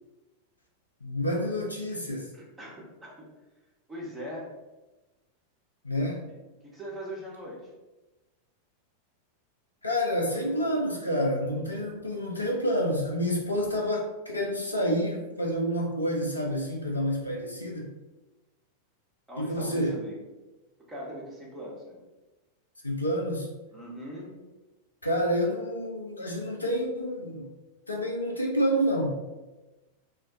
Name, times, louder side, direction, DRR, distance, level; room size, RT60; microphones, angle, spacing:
voice 1, 1.0-2.3 5.8-6.2 9.8-17.9 19.4-20.0 22.8-23.5 25.0-27.5 27.9-29.2, equal, 85° left, 0 dB, 0.3 m, -28 dB
voice 2, 2.3-3.3 3.9-4.5 6.6-7.7 10.2-10.8 19.3-20.2 20.9-22.0 23.7-24.4, equal, 10° right, -5 dB, 0.8 m, -41 dB
2.3 x 2.1 x 2.6 m, 1.1 s
figure-of-eight pair, 90°, 0 cm